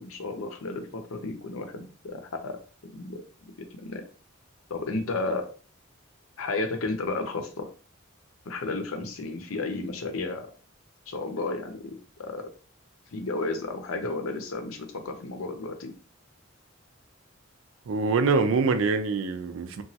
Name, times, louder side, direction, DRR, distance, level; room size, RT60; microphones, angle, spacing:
voice 1, 0.0-2.6 3.0-3.5 3.8-4.0 4.7-5.5 6.4-7.7 8.5-10.5 11.1-12.5 13.1-15.9, left 3 dB, 85° left, 0.6 m, -33 dB
voice 2, 17.9-19.8, right 4 dB, 75° right, 0.4 m, -24 dB
2.9 x 2.3 x 2.7 m
head